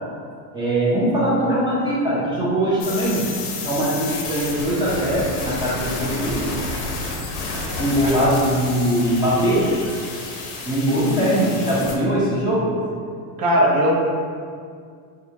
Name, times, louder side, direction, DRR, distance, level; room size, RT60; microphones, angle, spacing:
voice 1, 0.5-3.2 3.6-6.5 7.8-9.7 10.6-12.7, right 1 dB, 10° right, -10 dB, 0.6 m, -21 dB
sound 1, 2.8-11.9, left 3 dB, 80° left, 0.9 m, -30 dB
voice 2, 13.4-13.9, equal, 45° right, -3 dB, 0.9 m, -17 dB
4.8 x 2.4 x 2.8 m, 2.2 s
supercardioid pair, 125°, 48 cm